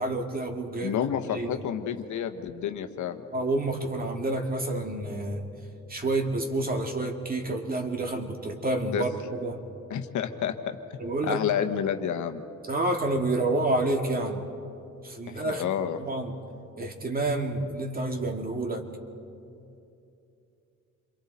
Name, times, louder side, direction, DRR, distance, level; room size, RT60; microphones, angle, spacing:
voice 1, 0.0-1.6 3.3-5.4 5.9-9.6 11.0-11.4 12.6-14.4 15.0-16.4 16.8-18.8, right 2 dB, 30° right, 3 dB, 2.3 m, -29 dB
voice 2, 0.8-3.2 8.9-9.0 9.9-12.4 15.3-16.0, left 9 dB, 75° left, 7 dB, 1.2 m, -30 dB
28.0 x 23.0 x 4.3 m, 2.7 s
cardioid pair, 90°, 30 cm